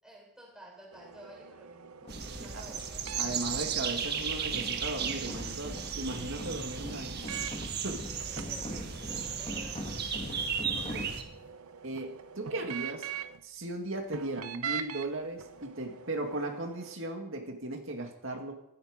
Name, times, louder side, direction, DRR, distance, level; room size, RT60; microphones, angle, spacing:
voice 1, 0.0-2.0 2.3-3.1 8.1-10.0, right 1 dB, 5° right, -2 dB, 4.4 m, -53 dB
sound 1, 0.9-7.7 8.2-13.4 14.1-15.1 15.4-17.0, right 7 dB, 90° right, 0.8 m, -44 dB
sound 2, 2.0-11.5, equal, 25° left, 2.9 m, -43 dB
sound 3, 2.1-11.2, right 6 dB, 45° right, 1.6 m, -35 dB
voice 2, 3.2-7.3 7.8-8.1 10.7-11.1 11.8-13.1 13.4-18.5, right 2 dB, 65° right, 3 dB, 2.1 m, -37 dB
16.0 x 13.5 x 5.1 m, 0.78 s
head